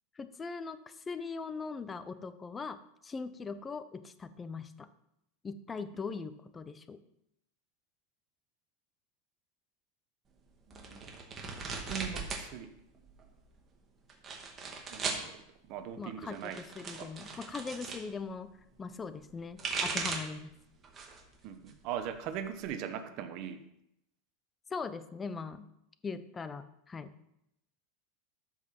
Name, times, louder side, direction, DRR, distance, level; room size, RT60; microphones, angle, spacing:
voice 1, 0.2-4.9 5.4-7.0 16.0-18.5 18.8-20.5 24.7-25.7 26.0-27.1, left 4 dB, 15° left, 13 dB, 0.7 m, -40 dB
sound 1, 10.7-12.5 12.8-13.4 14.1-15.3 16.3-18.0 19.3-20.4 20.8-21.3 21.7-22.6, right 4 dB, 25° right, 2.1 m, -38 dB
voice 2, 10.7-11.1 11.9-12.7 14.9-15.4 15.7-16.6 17.0-17.1 21.4-23.6, right 9 dB, 50° right, 8 dB, 1.3 m, -40 dB
13.5 x 5.7 x 6.1 m, 0.79 s
supercardioid pair, 140°, 0 cm